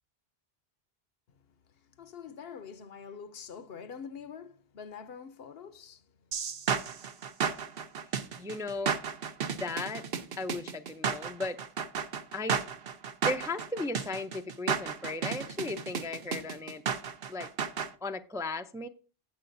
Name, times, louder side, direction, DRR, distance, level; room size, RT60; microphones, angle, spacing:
voice 1, 1.7-6.3, left 6 dB, 70° left, 1.0 m, -45 dB
sound 1, 6.3-17.9, right 6 dB, 65° right, 1.0 m, -33 dB
voice 2, 8.4-8.9 9.5-10.0 10.4-11.6 12.3-12.6 13.2-16.8 17.3-17.5 18.0-18.9, left 2 dB, 5° right, 0.4 m, -36 dB
17.0 x 6.9 x 2.6 m
omnidirectional pair, 1.1 m